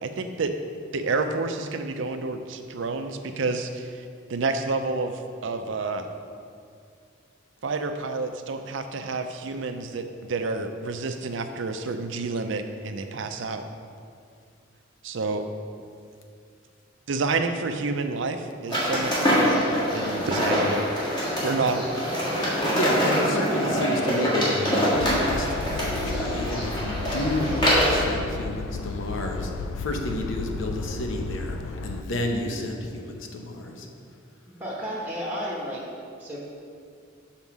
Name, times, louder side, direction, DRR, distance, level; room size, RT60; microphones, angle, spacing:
voice 1, 0.0-0.5 0.9-4.0 4.3-6.1 7.6-13.6 15.0-15.5 17.1-20.9 21.4-22.1, right 3 dB, 65° right, 7 dB, 0.5 m, -29 dB
sound 1, 18.7-28.1, equal, 25° left, 1.6 m, -24 dB
voice 2, 22.7-33.9, left 1 dB, 70° left, 2 dB, 0.8 m, -31 dB
sound 2, 24.9-32.0, left 3 dB, 90° left, 0.4 m, -33 dB
voice 3, 34.5-35.8 36.2-36.4, equal, 10° right, -5 dB, 1.0 m, -32 dB
5.5 x 4.4 x 6.0 m, 2.3 s
head